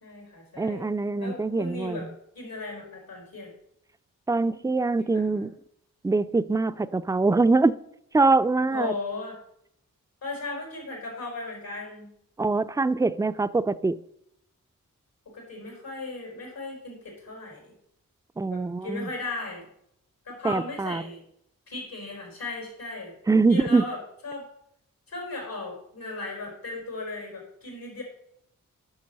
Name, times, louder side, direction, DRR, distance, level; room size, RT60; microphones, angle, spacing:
voice 1, 0.0-0.9 1.2-2.1 2.3-3.5 5.0-5.5 8.7-9.4 10.2-12.1 15.3-17.7 18.5-19.7 20.2-21.2 21.7-23.1 23.5-24.4 25.1-28.0, left 3 dB, 90° left, 4.1 m, -36 dB
voice 2, 0.6-2.1 4.3-5.5 6.0-7.8 8.1-8.9 12.4-14.0 18.4-19.1 20.4-21.0 23.3-23.9, right 3 dB, 10° right, 0.4 m, -23 dB
8.7 x 5.9 x 5.4 m
cardioid pair, 40°, 34 cm